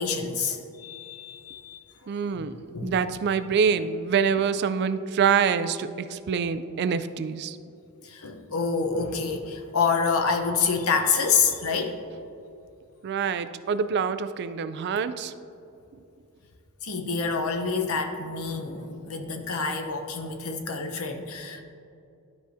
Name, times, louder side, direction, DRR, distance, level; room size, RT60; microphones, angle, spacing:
voice 1, 0.0-1.8 2.3-3.0 8.0-12.0 16.8-21.6, left 5 dB, 70° left, 5 dB, 0.8 m, -27 dB
voice 2, 2.1-2.5 2.8-7.6 13.0-15.3, right 6 dB, 50° right, 13 dB, 0.3 m, -25 dB
12.5 x 4.9 x 2.7 m, 2.7 s
head